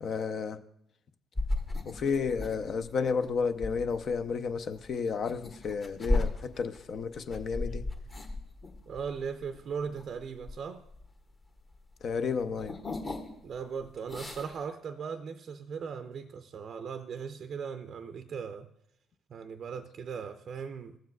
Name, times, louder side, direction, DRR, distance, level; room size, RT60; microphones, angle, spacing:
voice 1, 0.0-0.6 1.9-7.8 12.0-12.8, left 5 dB, 55° left, 0.5 m, -32 dB
sound 1, 1.3-11.7 12.0-13.6 13.9-14.6, left 2 dB, 35° left, 1.4 m, -35 dB
voice 2, 8.9-10.9 13.4-18.7 19.3-21.0, right 6 dB, 50° right, 0.4 m, -38 dB
15.5 x 7.4 x 2.3 m
hypercardioid pair, 50°, 0 cm